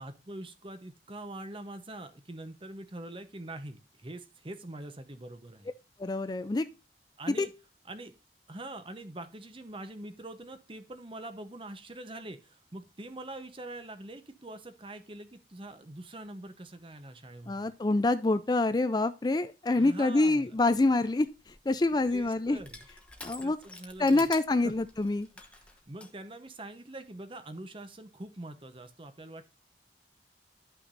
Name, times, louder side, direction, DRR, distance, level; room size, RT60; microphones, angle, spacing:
voice 1, 0.0-5.7 7.2-7.5 7.9-8.1 8.5-17.7 19.7-20.5 22.1-22.8 23.2-24.3 24.6-24.7 25.5-29.5, right 1 dB, 30° right, 0.9 m, -44 dB
voice 2, 6.0-6.7 7.4-7.5 17.5-22.6 23.2-23.6 24.0-25.3, left 2 dB, 25° left, 0.4 m, -26 dB
Crushing, 21.3-26.1, left 2 dB, 5° left, 1.0 m, -49 dB
11.5 x 5.9 x 2.6 m
head